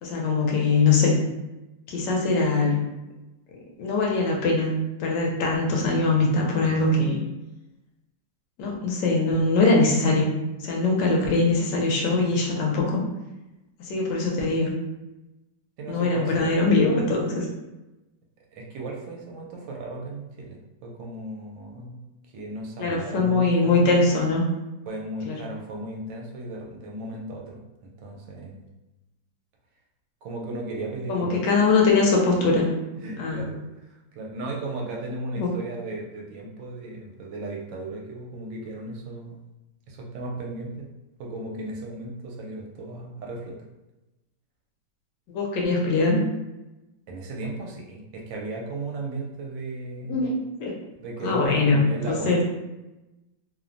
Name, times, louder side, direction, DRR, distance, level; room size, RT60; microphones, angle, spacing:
voice 1, 0.0-1.2 1.9-2.8 3.8-4.7 5.0-7.2 8.6-10.3 10.6-13.0 13.9-14.7 15.9-17.5 22.8-24.5 25.3-25.4 31.1-32.7 33.2-33.5 35.4-35.6 45.3-46.2 50.1-50.7 51.2-51.8 52.1-52.4, left 3 dB, 75° left, -1 dB, 1.1 m, -22 dB
voice 2, 15.8-16.5 18.5-22.0 22.3-24.0 24.9-27.6 28.0-28.7 30.2-31.4 32.4-32.7 33.0-33.6 33.9-39.4 39.9-40.9 41.2-43.7 47.1-50.3 51.0-52.4, right 2 dB, 85° right, -1 dB, 1.3 m, -35 dB
3.1 x 2.0 x 2.5 m, 1.0 s
omnidirectional pair, 2.0 m